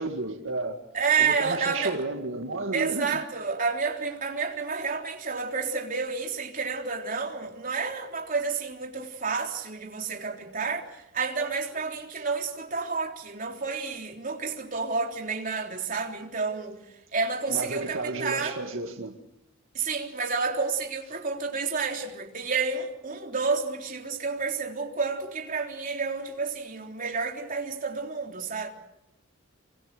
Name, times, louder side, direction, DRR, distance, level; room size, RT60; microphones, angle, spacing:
voice 1, 0.0-0.8 1.2-3.2 12.2-12.3 17.5-19.2 19.8-19.9, right 2 dB, 80° right, 2.1 m, -32 dB
voice 2, 0.9-2.0 2.7-16.8 17.1-18.6 19.7-28.7, right 5 dB, 40° right, 3.6 m, -30 dB
27.5 x 24.0 x 6.8 m
head